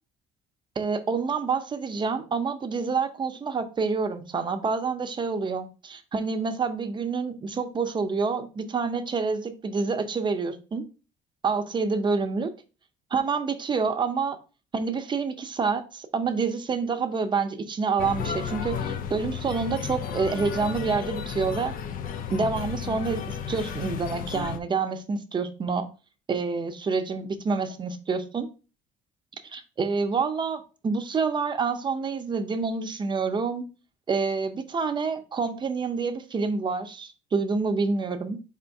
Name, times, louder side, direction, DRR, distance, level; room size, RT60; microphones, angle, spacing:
voice 1, 0.8-10.8 11.4-12.5 13.1-14.4 14.7-21.7 22.3-25.9 26.3-28.5 29.5-33.6 34.1-38.4, right 4 dB, 25° right, 0.6 m, -27 dB
sound 1, 18.0-24.6, left 7 dB, 55° left, 0.5 m, -33 dB
4.3 x 2.6 x 4.5 m
cardioid pair, 110°, 17 cm